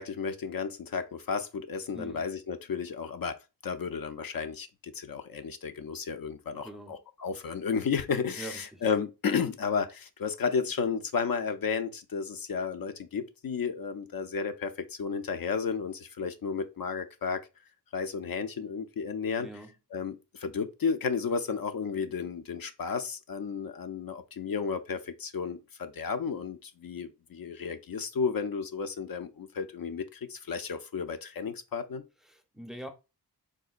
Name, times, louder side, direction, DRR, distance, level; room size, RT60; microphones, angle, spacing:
voice 1, 0.0-3.4 3.6-17.4 17.9-19.5 19.9-32.0, left 6 dB, 55° left, 0.5 m, -33 dB
voice 2, 1.9-2.3 6.5-7.0 8.4-8.8 19.4-19.7 32.2-32.9, right 1 dB, ahead, 0.6 m, -43 dB
3.7 x 2.1 x 2.4 m
wide cardioid pair, 65°, 41 cm